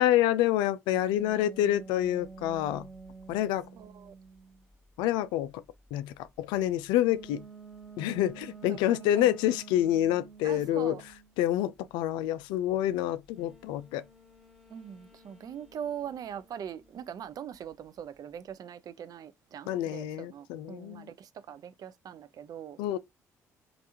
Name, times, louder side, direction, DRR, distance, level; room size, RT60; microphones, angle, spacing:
voice 1, 0.0-2.9 3.3-3.7 5.0-5.6 5.9-7.4 8.0-11.0 11.4-14.0 19.7-21.1 22.8-23.0, left 12 dB, 70° left, 0.4 m, -27 dB
sound 1, 0.9-4.7 7.0-11.4 13.3-17.1, right 4 dB, ahead, 1.2 m, -50 dB
voice 2, 3.8-4.1 8.6-9.4 10.4-11.0 14.7-22.8, right 9 dB, 50° right, 0.4 m, -42 dB
3.3 x 2.5 x 2.8 m
figure-of-eight pair, 45°, 8 cm